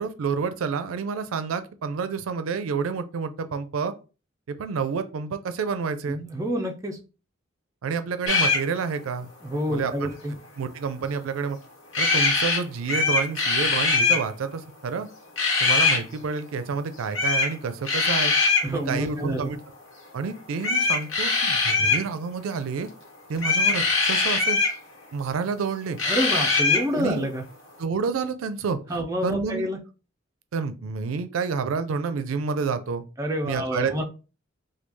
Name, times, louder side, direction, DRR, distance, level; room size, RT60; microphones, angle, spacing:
voice 1, 0.0-3.9 4.5-6.2 7.8-9.3 9.7-10.1 10.6-11.6 12.0-15.1 15.6-18.3 18.7-19.6 20.1-22.9 23.3-24.6 25.1-26.0 27.0-27.3 27.8-28.8 29.2-29.7 30.5-33.0 33.4-34.0, right 5 dB, 85° right, 10 dB, 0.4 m, -29 dB
voice 2, 6.1-7.0 9.4-10.3 18.6-19.5 26.0-27.4 28.9-29.8 33.2-34.0, equal, 15° right, 2 dB, 0.4 m, -28 dB
sound 1, 8.3-8.6 11.9-12.6 12.8-14.2 15.4-16.0 17.1-17.5 17.8-18.7 20.6-22.0 23.4-24.7 26.0-26.9, left 4 dB, 70° left, 1.1 m, -22 dB
3.1 x 2.2 x 3.3 m, 0.33 s
head